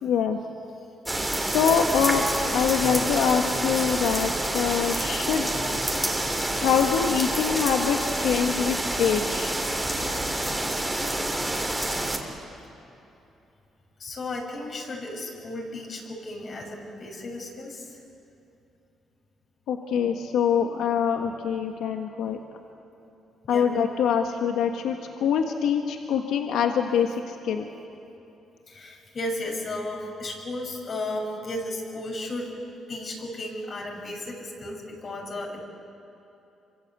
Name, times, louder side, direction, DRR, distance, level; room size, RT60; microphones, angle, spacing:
voice 1, 0.0-0.4 1.4-2.2 2.5-5.8 6.5-9.5 19.7-22.4 23.5-27.6, left 7 dB, 85° left, 4 dB, 1.5 m, -24 dB
sound 1, 1.0-12.2, right 1 dB, 10° right, 3.7 m, -27 dB
voice 2, 14.0-18.0 23.5-23.7 28.7-32.6 32.9-35.6, left 1 dB, 50° left, 0 dB, 6.9 m, -34 dB
26.5 x 24.5 x 8.3 m, 2.8 s
cardioid pair, 90°, 0 cm